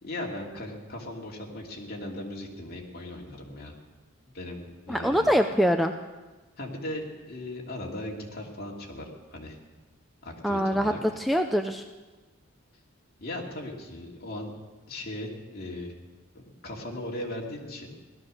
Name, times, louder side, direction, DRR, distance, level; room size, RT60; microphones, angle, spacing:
voice 1, 0.0-3.7 4.3-5.3 6.6-9.6 10.2-11.0 13.2-14.5 14.9-15.9 16.3-18.0, left 1 dB, 50° left, -1 dB, 2.6 m, -38 dB
voice 2, 4.9-5.9 10.4-11.8, equal, ahead, 5 dB, 0.5 m, -24 dB
17.5 x 12.5 x 6.5 m, 1.2 s
head